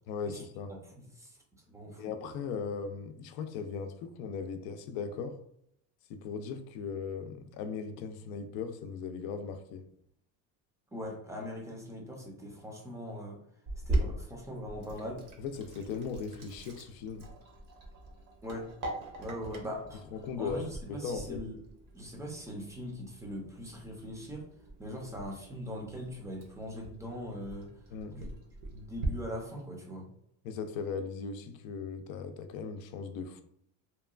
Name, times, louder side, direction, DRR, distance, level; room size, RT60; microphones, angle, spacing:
voice 1, 0.1-0.8 2.0-5.4 6.1-9.8 15.4-17.3 20.1-21.4 27.9-28.2 30.4-33.4, left 5 dB, 85° left, 0.5 m, -38 dB
voice 2, 1.0-1.3 1.7-2.0 10.9-13.4 13.9-15.2 18.4-18.7 19.2-20.0 20.4-21.6 21.9-24.5 24.8-27.7 28.1-28.3 28.7-30.1, equal, 5° right, 0.4 m, -41 dB
Sink (filling or washing), 13.7-29.1, right 1 dB, 45° right, 0.6 m, -41 dB
2.9 x 2.2 x 2.3 m
cardioid pair, 130°, 46 cm